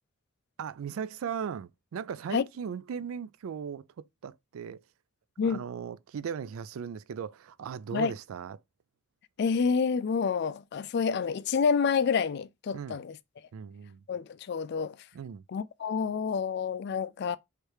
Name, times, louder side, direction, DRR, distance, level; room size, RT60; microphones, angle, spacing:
voice 1, 0.6-4.8 5.4-8.6 12.7-13.0 13.5-14.0 15.1-15.4, right 7 dB, 85° right, 0.4 m, -38 dB
voice 2, 9.4-13.2 14.1-15.0 15.5-17.4, left 6 dB, 50° left, 0.3 m, -28 dB
3.2 x 3.2 x 4.7 m
head